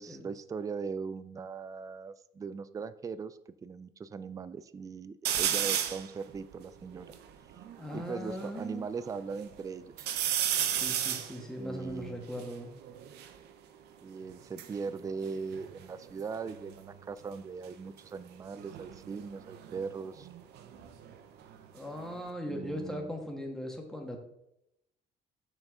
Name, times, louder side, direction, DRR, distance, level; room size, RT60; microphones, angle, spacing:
voice 1, 0.0-7.1 7.9-10.1 11.6-12.3 14.0-20.3 22.5-23.1, right 5 dB, 20° right, 14 dB, 0.3 m, -40 dB
sound 1, 5.2-6.1 6.6-6.7 6.9-8.5 9.0-9.6 10.0-13.4 14.3-16.2 16.5-17.0 18.5-21.2 21.5-22.3, right 10 dB, 75° right, 0.7 m, -34 dB
voice 2, 7.8-8.9 10.7-12.7 21.7-24.2, equal, 5° left, 1 dB, 1.5 m, -39 dB
6.3 x 6.2 x 3.7 m, 0.82 s
cardioid pair, 110°, 17 cm